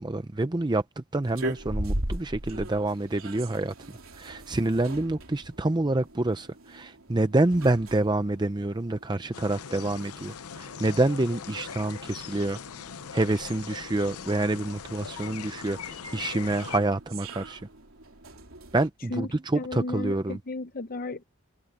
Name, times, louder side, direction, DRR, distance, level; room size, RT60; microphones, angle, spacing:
voice 1, 0.0-3.7 4.1-12.6 13.1-17.6 18.7-20.4, right 2 dB, 20° right, 0.6 m, -27 dB
sound 1, 1.2-18.9, right 1 dB, 65° right, 3.7 m, -40 dB
sound 2, 9.3-16.8, left 7 dB, 80° left, 0.7 m, -40 dB
voice 2, 19.5-21.2, left 2 dB, 40° left, 0.7 m, -34 dB
head